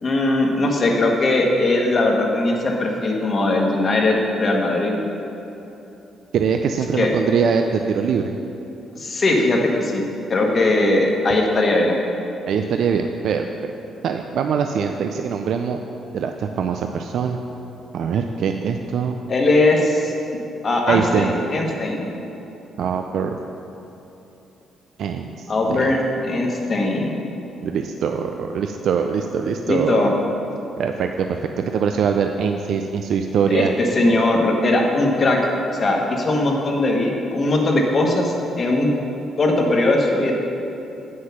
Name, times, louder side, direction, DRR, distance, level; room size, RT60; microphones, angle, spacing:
voice 1, 0.0-4.9 7.0-7.1 8.9-10.0 10.3-12.0 19.3-20.1 20.6-22.1 25.5-26.0 26.2-27.2 29.7-30.1 33.5-35.4 35.7-38.9 39.4-40.3, left 2 dB, 45° left, 0 dB, 1.4 m, -19 dB
voice 2, 6.3-8.4 12.5-13.5 14.0-15.8 16.1-17.4 17.9-19.2 20.9-21.3 22.8-23.4 25.0-25.9 27.6-30.1 30.8-33.7, right 6 dB, 70° right, 5 dB, 0.4 m, -22 dB
7.8 x 6.3 x 5.7 m, 3.0 s
cardioid pair, 90°, 0 cm